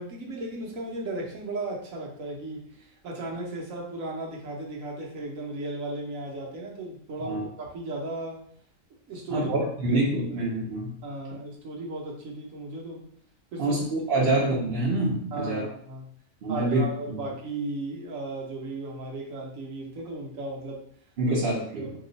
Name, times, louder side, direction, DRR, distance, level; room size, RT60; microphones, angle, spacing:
voice 1, 0.0-8.4 9.1-9.5 9.9-10.0 10.3-10.4 11.0-13.1 13.5-13.8 14.2-14.3 15.3-16.1 16.5-20.8 21.3-21.4 21.8-21.9, right 2 dB, 65° right, -1 dB, 1.1 m, -35 dB
voice 2, 9.3-11.0 13.6-15.6 16.4-17.3 21.2-21.9, right 2 dB, 50° right, -6 dB, 0.8 m, -26 dB
2.9 x 2.3 x 3.9 m, 0.63 s
omnidirectional pair, 1.6 m